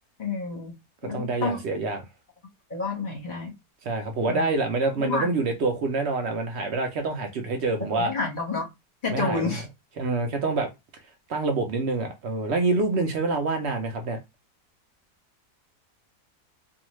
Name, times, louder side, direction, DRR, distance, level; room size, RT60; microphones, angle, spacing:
voice 1, 0.2-0.7 1.0-1.6 2.7-3.5 4.3-4.4 5.0-5.3 7.9-8.7 9.0-9.6, left 4 dB, 40° left, 0.8 m, -29 dB
voice 2, 1.1-2.1 3.8-8.1 9.1-9.6 10.0-10.7 11.3-14.2, right 3 dB, 65° right, 0.7 m, -26 dB
2.6 x 2.4 x 3.0 m
omnidirectional pair, 1.6 m